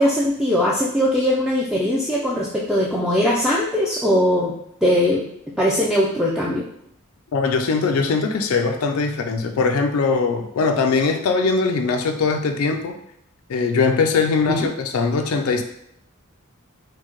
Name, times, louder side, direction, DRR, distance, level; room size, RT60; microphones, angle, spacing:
voice 1, 0.0-4.5 4.8-5.3 5.6-6.7 14.5-14.7, equal, 5° right, -5 dB, 0.3 m, -20 dB
voice 2, 7.3-12.9 13.5-15.6, left 4 dB, 70° left, 5 dB, 0.4 m, -21 dB
4.5 x 2.1 x 3.0 m, 0.73 s
head